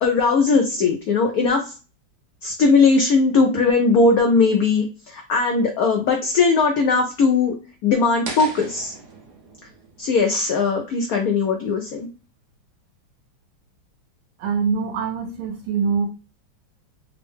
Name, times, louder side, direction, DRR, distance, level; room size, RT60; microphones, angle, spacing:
voice 1, 0.0-1.6 2.4-7.5 7.8-8.9 10.0-12.1, left 4 dB, 90° left, 3 dB, 0.8 m, -19 dB
sound 1, 8.3-11.3, right 3 dB, 60° right, 1.3 m, -38 dB
voice 2, 14.4-16.1, right 5 dB, 85° right, 1 dB, 1.4 m, -23 dB
3.7 x 2.1 x 3.2 m, 0.33 s
omnidirectional pair, 2.2 m